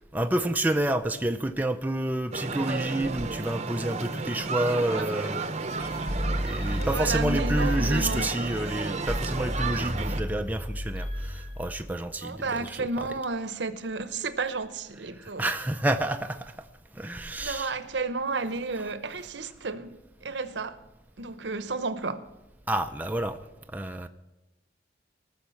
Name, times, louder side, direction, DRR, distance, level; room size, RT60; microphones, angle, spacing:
voice 1, 0.1-5.8 6.4-13.1 15.1-16.5 16.9-17.7 22.7-23.4 23.7-24.1, right 1 dB, 10° right, 0.4 m, -29 dB
sound 1, 2.3-10.2, right 3 dB, 35° right, 0.8 m, -33 dB
sound 2, 5.8-11.8, equal, 30° left, 2.3 m, -31 dB
voice 2, 6.8-8.3 12.2-15.5 17.4-19.9 20.2-20.8 21.2-22.3, right 3 dB, 70° right, 0.9 m, -32 dB
18.5 x 6.5 x 7.1 m
head